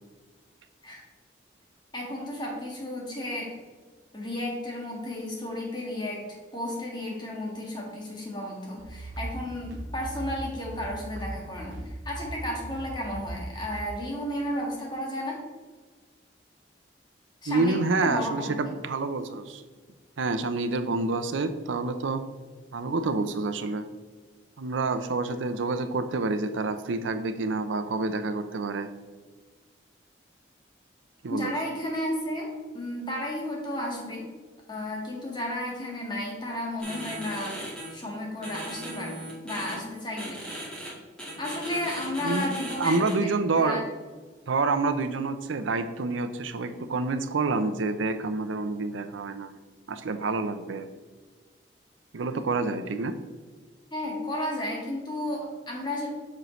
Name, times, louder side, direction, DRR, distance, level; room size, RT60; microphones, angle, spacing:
voice 1, 1.9-3.5 4.1-15.4 17.4-18.5 31.3-32.5 32.7-34.3 34.7-37.6 37.9-40.4 41.4-43.8 53.9-56.1, left 1 dB, 25° left, -2 dB, 1.6 m, -33 dB
sound 1, 8.8-13.8, right 1 dB, 70° right, 1.1 m, -39 dB
voice 2, 17.5-19.6 20.2-22.2 22.7-23.9 24.6-28.9 31.2-31.5 42.2-42.5 42.8-43.8 44.5-49.5 49.9-50.9 52.1-53.2, right 3 dB, 90° right, 10 dB, 0.6 m, -28 dB
sound 2, 36.8-37.9 38.4-39.7 40.2-40.9 41.2-43.1, right 1 dB, 5° left, 2.1 m, -38 dB
7.6 x 6.4 x 3.1 m, 1.4 s
head